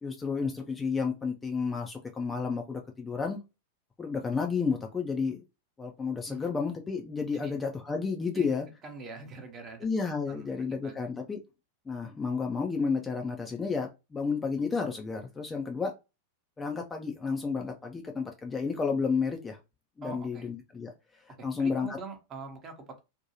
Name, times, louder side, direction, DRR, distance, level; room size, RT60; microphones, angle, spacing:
voice 1, 0.0-3.4 4.0-5.4 5.8-8.7 9.8-11.4 11.9-15.9 16.6-19.6 20.0-20.9 21.3-21.9, left 5 dB, 15° left, 3 dB, 0.4 m, -31 dB
voice 2, 8.8-9.9 10.3-11.0 20.0-20.5 21.4-23.0, right 3 dB, 30° right, 5 dB, 0.8 m, -43 dB
2.6 x 2.2 x 2.9 m, 0.26 s
figure-of-eight pair, 90°, 0 cm